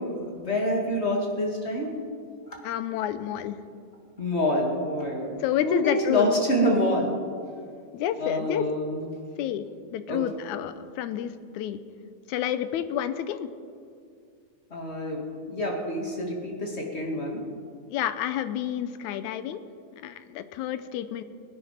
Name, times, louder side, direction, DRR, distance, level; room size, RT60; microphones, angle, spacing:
voice 1, 0.0-1.9 2.5-2.6 4.2-7.2 8.2-9.1 10.1-10.2 14.7-17.4, left 1 dB, 25° left, 0 dB, 1.9 m, -27 dB
voice 2, 2.6-3.6 5.4-6.3 7.9-8.7 9.4-9.7 9.9-11.8 12.3-13.5 17.9-19.6 20.0-21.2, left 10 dB, 80° left, 12 dB, 2.0 m, -29 dB
20.5 x 9.4 x 5.8 m, 2.3 s
omnidirectional pair, 3.5 m